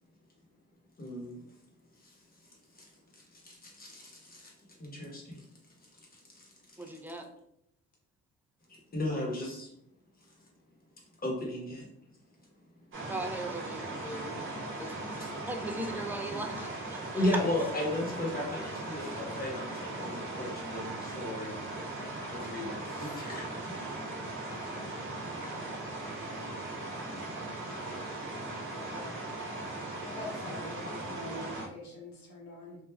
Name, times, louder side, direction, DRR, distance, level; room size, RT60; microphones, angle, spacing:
voice 1, 1.0-1.4 2.0-2.2 2.7-2.9 3.1-4.5 4.8-5.4 6.1-6.5 7.1-7.2 8.7-9.7 11.2-11.9 15.2-15.3 17.0-21.5 22.3-23.7, left 1 dB, 30° left, -1 dB, 1.0 m, -35 dB
voice 2, 6.8-7.3 13.1-14.3 14.8-15.0 15.5-17.3, right 2 dB, 5° right, 3 dB, 0.3 m, -39 dB
sound 1, 12.9-31.7, right 2 dB, 40° right, 0.8 m, -39 dB
voice 3, 28.7-29.2 30.0-32.8, left 2 dB, 70° left, -4 dB, 1.1 m, -44 dB
3.3 x 2.4 x 2.2 m, 0.76 s
cardioid pair, 90°, 30 cm